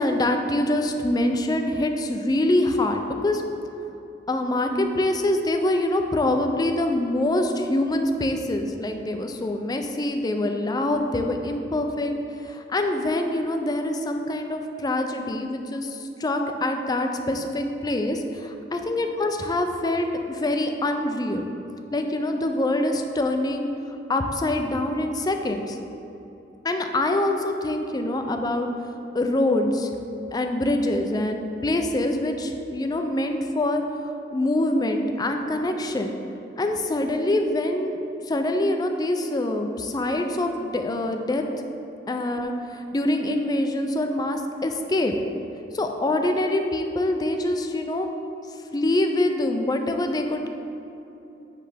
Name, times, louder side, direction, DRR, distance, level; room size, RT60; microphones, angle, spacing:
voice 1, 0.0-3.4 4.3-12.1 12.4-21.5 21.9-23.7 24.1-25.8 26.6-28.7 29.1-33.8 34.3-36.2 36.6-38.0 38.3-41.4 42.1-45.1 45.7-48.1 48.7-50.5, left 1 dB, 20° left, 5 dB, 0.4 m, -25 dB
7.7 x 3.3 x 5.0 m, 2.9 s
head